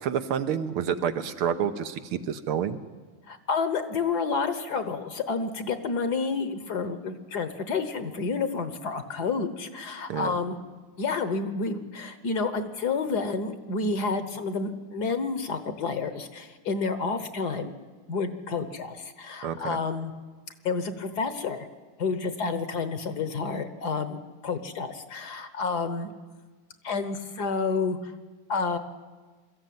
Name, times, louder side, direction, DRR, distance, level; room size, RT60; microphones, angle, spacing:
voice 1, 0.0-2.8 10.1-10.3 19.4-19.8, right 8 dB, 80° right, 9 dB, 1.9 m, -28 dB
voice 2, 3.3-10.6 11.0-17.7 18.1-20.1 20.6-21.6 22.0-26.1 26.8-28.1 28.5-28.8, left 4 dB, 55° left, 11 dB, 1.5 m, -29 dB
22.5 x 14.0 x 9.3 m, 1.3 s
omnidirectional pair, 2.4 m